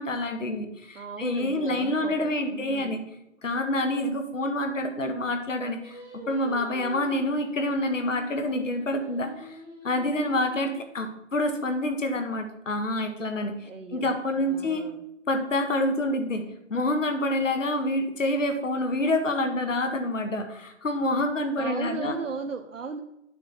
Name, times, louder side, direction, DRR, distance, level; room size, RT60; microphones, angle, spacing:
voice 1, 0.0-3.0 3.4-9.6 9.8-14.9 15.3-22.2, left 1 dB, 85° left, 5 dB, 1.7 m, -27 dB
voice 2, 0.9-3.0 13.6-15.0 21.6-23.0, right 4 dB, 90° right, 4 dB, 1.0 m, -37 dB
Singing, 5.8-11.1, equal, 5° right, 3.3 m, -45 dB
9.5 x 7.6 x 4.3 m, 0.86 s
hypercardioid pair, 175°, 37 cm